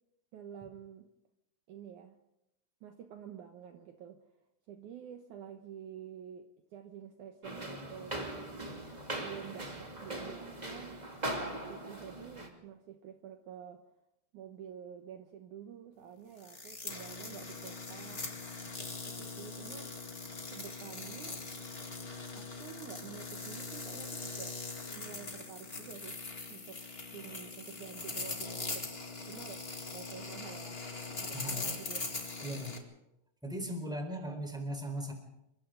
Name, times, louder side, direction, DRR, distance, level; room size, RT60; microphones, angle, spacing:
voice 1, 0.3-1.1 1.7-2.2 2.8-4.3 4.7-8.2 9.2-11.0 11.3-13.9 14.3-18.3 19.1-19.9 20.5-21.5 22.4-24.6 25.0-26.2 26.5-26.9 27.1-28.9 29.3-29.6 29.9-30.8 31.2-32.1, right 9 dB, 75° right, 5 dB, 1.8 m, -49 dB
sound 1, 7.4-12.5, right 1 dB, 20° right, 1.3 m, -40 dB
sound 2, 16.4-32.8, left 3 dB, 50° left, 0.6 m, -41 dB
voice 2, 31.3-31.7 32.4-32.8 33.4-35.1, equal, ahead, 3 dB, 3.5 m, -38 dB
28.0 x 24.0 x 3.9 m, 0.86 s
omnidirectional pair, 5.1 m